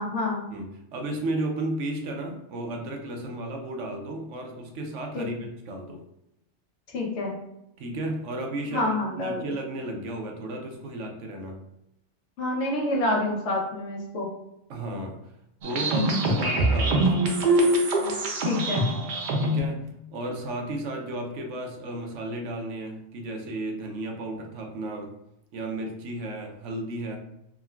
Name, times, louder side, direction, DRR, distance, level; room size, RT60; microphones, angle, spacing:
voice 1, 0.0-0.5 5.1-5.3 6.9-7.4 8.7-9.5 12.4-14.3 18.4-18.9, left 2 dB, 80° left, -1 dB, 1.0 m, -28 dB
voice 2, 0.5-6.0 7.8-11.6 14.7-15.2 15.6-17.4 19.4-25.1 25.5-27.2, right 1 dB, 85° right, 2 dB, 0.9 m, -34 dB
sound 1, 15.6-19.6, right 1 dB, 55° right, 0.6 m, -23 dB
3.6 x 2.1 x 2.2 m, 0.85 s
omnidirectional pair, 1.2 m